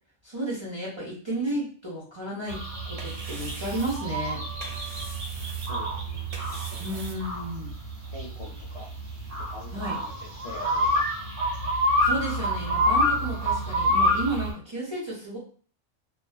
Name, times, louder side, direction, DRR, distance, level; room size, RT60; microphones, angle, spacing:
voice 1, 0.2-4.4 6.8-7.8 9.7-10.0 12.0-15.4, right 1 dB, 30° right, -6 dB, 0.6 m, -32 dB
sound 1, 2.5-14.5, equal, 55° right, 1.2 m, -28 dB
sound 2, 2.6-7.7, right 2 dB, 70° right, 0.3 m, -45 dB
voice 2, 5.5-6.3 6.7-6.8 8.1-8.9 9.5-10.1 10.4-11.3, left 1 dB, 40° left, -7 dB, 0.5 m, -44 dB
2.5 x 2.3 x 2.2 m, 0.43 s
omnidirectional pair, 1.2 m